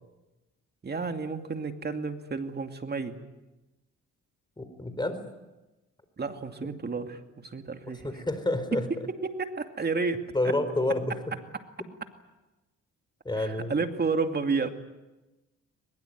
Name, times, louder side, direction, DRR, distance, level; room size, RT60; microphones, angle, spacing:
voice 1, 0.8-3.2 6.2-8.1 9.2-10.5 13.4-14.7, right 4 dB, 35° right, 6 dB, 2.5 m, -31 dB
voice 2, 4.6-5.2 7.9-8.8 10.3-11.2 13.2-13.8, left 1 dB, 15° left, 10 dB, 4.4 m, -29 dB
22.0 x 22.0 x 9.5 m, 1.1 s
cardioid pair, 90°, 30 cm